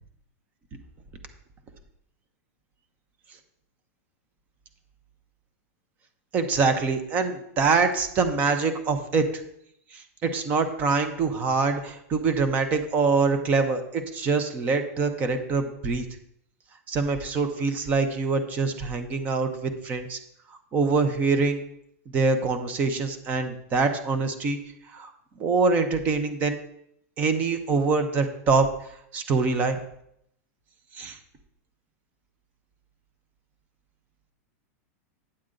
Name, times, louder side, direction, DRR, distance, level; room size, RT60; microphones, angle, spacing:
voice 1, 6.3-9.3 9.9-16.0 16.9-20.2 20.7-21.6 22.1-24.6 24.9-25.1 25.4-26.6 27.2-28.7 29.1-29.8 30.9-31.2, right 4 dB, 20° right, 8 dB, 0.6 m, -24 dB
8.7 x 7.8 x 3.8 m, 0.74 s
supercardioid pair, 175°, 8 cm